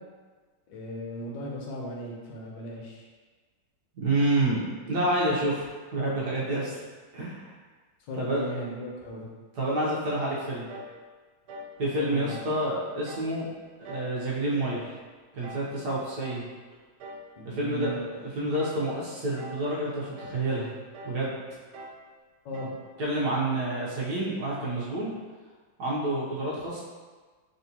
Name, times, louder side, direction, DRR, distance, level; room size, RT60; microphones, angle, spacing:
voice 1, 0.7-3.0 8.1-9.3 12.0-12.4 17.4-18.0 22.4-22.7, equal, 70° left, -2 dB, 1.4 m, -36 dB
voice 2, 3.9-6.8 7.1-7.5 8.2-8.4 9.6-10.7 11.8-13.5 13.9-14.8 15.3-16.4 17.4-17.9 18.2-20.7 21.0-21.3 23.0-25.1 25.8-26.8, right 1 dB, 60° right, -7 dB, 1.3 m, -28 dB
sound 1, 10.7-11.0 11.5-11.8 12.3-12.6 13.1-13.3 13.8-14.2 14.6-14.9 15.4-15.7 16.2-16.5 17.0-17.3 17.8-18.1 18.6-18.9 19.4-19.7 20.2-20.4 20.9-21.2 21.7-22.0 22.5-22.8, right 1 dB, 85° right, 1.4 m, -43 dB
4.1 x 3.5 x 2.9 m, 1.4 s
omnidirectional pair, 2.3 m